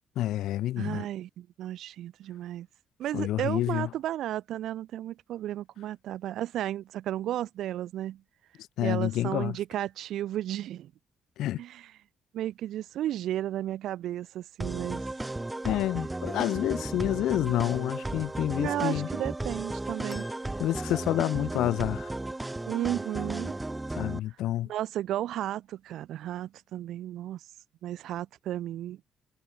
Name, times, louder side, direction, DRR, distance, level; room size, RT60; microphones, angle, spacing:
voice 1, 0.2-1.0 3.1-3.9 8.8-9.6 11.4-11.6 15.6-19.1 20.6-22.1 23.9-24.7, left 14 dB, 85° left, 0.4 m, -28 dB
voice 2, 0.8-2.7 3.0-8.2 8.8-10.9 11.6-11.9 12.3-15.0 18.6-20.2 22.7-23.6 24.7-27.4 27.8-29.0, right 12 dB, 80° right, 0.9 m, -33 dB
sound 1, 14.6-24.2, right 2 dB, 15° right, 0.9 m, -35 dB
sound 2, 20.1-21.7 22.2-22.3 23.5-23.6, left 2 dB, 15° left, 2.9 m, -50 dB
cardioid pair, 90°, 0 cm